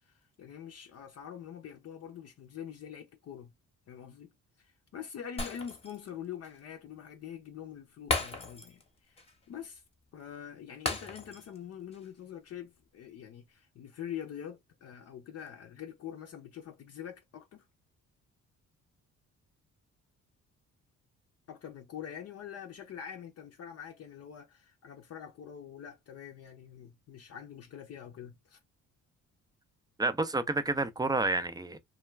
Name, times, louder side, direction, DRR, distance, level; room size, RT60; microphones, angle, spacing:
voice 1, 0.0-3.5 3.9-4.3 4.6-9.2 9.5-9.8 10.1-17.7 21.5-28.6, left 9 dB, 55° left, 0.5 m, -45 dB
Shatter, 5.4-6.1 6.4-6.6 8.1-8.9 9.2-9.3 10.9-11.6 11.9-12.1, left 2 dB, 20° left, 0.8 m, -35 dB
voice 2, 30.0-31.8, right 2 dB, 15° right, 0.4 m, -29 dB
2.3 x 2.2 x 3.1 m
cardioid pair, 90°, 30 cm